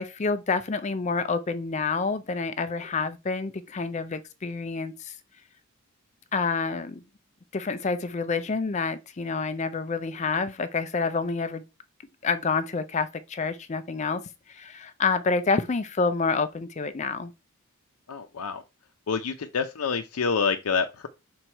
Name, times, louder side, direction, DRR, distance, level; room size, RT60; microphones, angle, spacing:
voice 1, 0.0-5.2 6.3-7.0 7.5-11.6 12.2-14.2 14.5-17.3, left 4 dB, 30° left, 0.4 m, -28 dB
voice 2, 18.1-18.6 19.1-21.1, left 5 dB, 85° left, 0.6 m, -27 dB
6.1 x 4.0 x 4.3 m
head